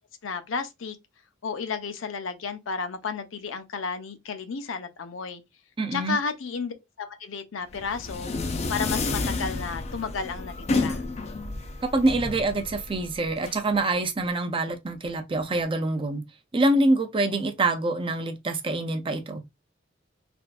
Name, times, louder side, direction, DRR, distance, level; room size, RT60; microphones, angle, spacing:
voice 1, 0.2-1.0 1.4-5.4 5.9-8.3 8.7-11.0, left 5 dB, 80° left, 0.6 m, -32 dB
voice 2, 5.8-6.2 11.8-16.2 16.5-19.4, right 2 dB, 25° right, 0.5 m, -25 dB
sound 1, 7.7-13.5, left 3 dB, 35° left, 0.4 m, -30 dB
3.4 x 2.5 x 2.4 m
head